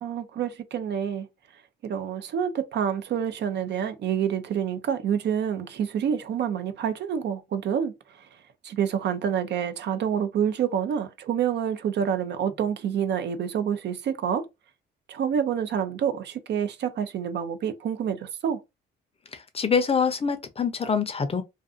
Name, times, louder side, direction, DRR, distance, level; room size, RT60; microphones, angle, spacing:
voice 1, 0.0-1.3 1.8-7.9 8.6-14.4 15.1-18.6, right 8 dB, 60° right, 0.5 m, -27 dB
voice 2, 19.3-21.4, left 6 dB, 30° left, 0.5 m, -25 dB
2.4 x 2.4 x 2.4 m
cardioid pair, 90°, 20 cm